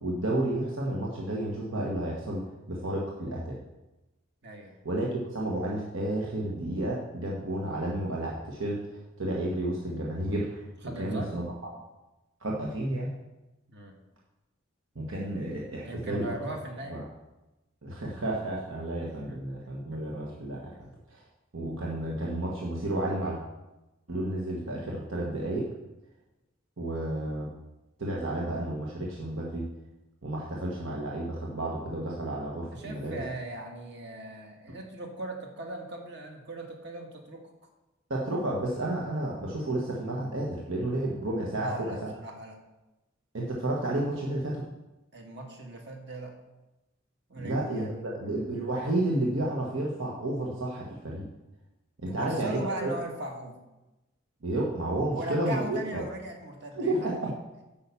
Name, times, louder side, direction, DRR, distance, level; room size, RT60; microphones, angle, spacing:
voice 1, 0.0-3.6 4.8-10.6 11.0-11.7 12.4-13.1 14.9-16.3 16.9-17.0 17.8-21.2 21.5-23.4 24.1-25.7 26.8-27.5 28.0-29.7 30.2-33.1 38.1-41.9 43.3-44.7 47.4-51.3 52.0-52.9 54.4-56.0 56.7-57.1, right 1 dB, 80° right, -3 dB, 1.3 m, -31 dB
voice 2, 4.4-4.7 10.8-11.3 13.7-14.0 15.8-17.0 19.0-19.4 19.9-20.0 20.7-20.8 32.7-37.5 41.5-42.6 45.1-46.3 47.3-48.3 52.1-53.6 55.0-57.3, right 1 dB, 60° right, 2 dB, 1.7 m, -39 dB
8.8 x 5.6 x 7.0 m, 1.0 s
head